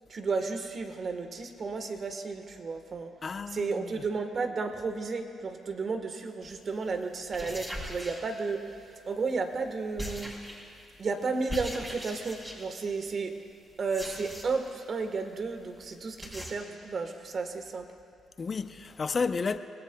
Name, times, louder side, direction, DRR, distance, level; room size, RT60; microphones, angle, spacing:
voice 1, 0.1-3.1 3.5-8.6 9.1-10.3 11.0-13.3 13.8-17.9, right 4 dB, 50° right, 1.3 m, -33 dB
voice 2, 3.2-4.0 18.4-19.6, left 4 dB, 40° left, 0.6 m, -32 dB
sound 1, 6.4-6.6 7.2-8.8 10.0-10.8 11.5-12.8 13.8-14.7 15.0-15.1 15.4-15.5 15.7-15.8 16.2-16.5, equal, 15° right, 3.9 m, -40 dB
24.5 x 19.0 x 2.3 m
cardioid pair, 85°, 0 cm